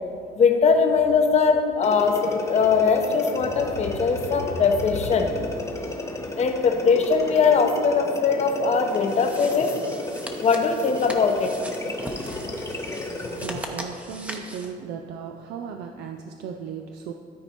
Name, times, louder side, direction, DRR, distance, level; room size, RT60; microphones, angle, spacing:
voice 1, 0.4-5.3 6.4-9.8 10.4-11.5, left 5 dB, 40° left, 5 dB, 0.9 m, -21 dB
sound 1, 1.8-13.7, left 2 dB, 15° left, 1.0 m, -34 dB
sound 2, 8.9-14.7, equal, 10° right, 0.8 m, -39 dB
voice 2, 13.1-17.1, right 7 dB, 75° right, 4 dB, 0.5 m, -36 dB
13.0 x 4.4 x 4.4 m, 2.4 s
cardioid pair, 110°, 17 cm